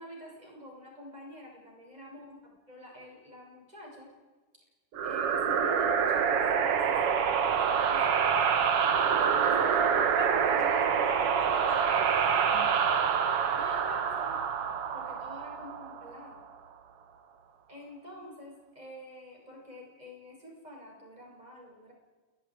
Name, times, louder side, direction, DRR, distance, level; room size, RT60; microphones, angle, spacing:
voice 1, 0.0-4.1 5.0-7.2 7.6-8.3 9.2-9.9 10.5-11.3 13.5-14.5 14.9-16.4 17.7-21.9, equal, 10° right, -2 dB, 7.4 m, -47 dB
sound 1, 4.9-16.3, right 7 dB, 55° right, 1.6 m, -26 dB
voice 2, 9.6-12.8, right 4 dB, 30° right, 4 dB, 0.5 m, -42 dB
29.0 x 21.0 x 5.0 m, 1.3 s
omnidirectional pair, 4.5 m